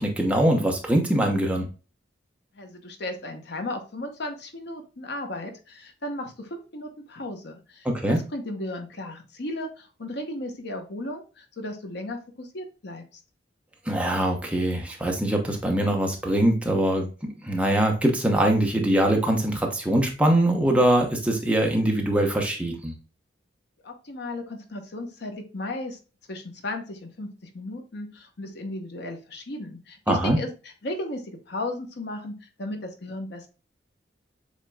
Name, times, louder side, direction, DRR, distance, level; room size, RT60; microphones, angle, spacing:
voice 1, 0.0-1.7 7.8-8.2 13.9-22.9 30.1-30.4, right 1 dB, 5° right, 1 dB, 0.9 m, -23 dB
voice 2, 2.5-13.0 23.8-26.0 26.3-33.5, left 1 dB, 65° left, 5 dB, 0.9 m, -35 dB
7.2 x 2.9 x 2.2 m, 0.34 s
head